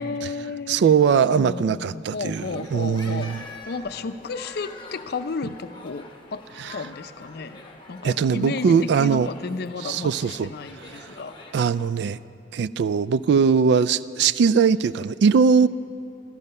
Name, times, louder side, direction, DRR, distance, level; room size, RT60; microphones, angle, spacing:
voice 1, 0.0-0.8 1.1-3.3 3.7-6.4 6.7-7.6 7.9-11.4, left 4 dB, 60° left, 11 dB, 0.5 m, -33 dB
voice 2, 0.7-3.4 8.0-9.3 9.8-10.5 11.0-11.1 11.5-12.2 12.5-15.7, right 6 dB, 65° right, 16 dB, 0.3 m, -20 dB
sound 1, 2.3-11.9, left 2 dB, 25° left, 1.1 m, -45 dB
14.5 x 12.5 x 5.4 m, 2.6 s
head